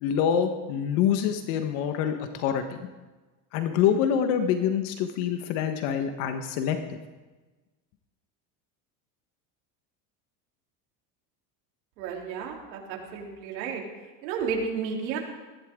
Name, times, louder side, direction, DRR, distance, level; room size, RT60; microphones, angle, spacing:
voice 1, 0.0-2.9 3.5-7.0, left 8 dB, 65° left, 6 dB, 1.6 m, -26 dB
voice 2, 12.0-13.8 14.2-15.2, right 6 dB, 80° right, -1 dB, 3.7 m, -32 dB
19.0 x 15.5 x 3.8 m, 1.2 s
supercardioid pair, 130°, 50 cm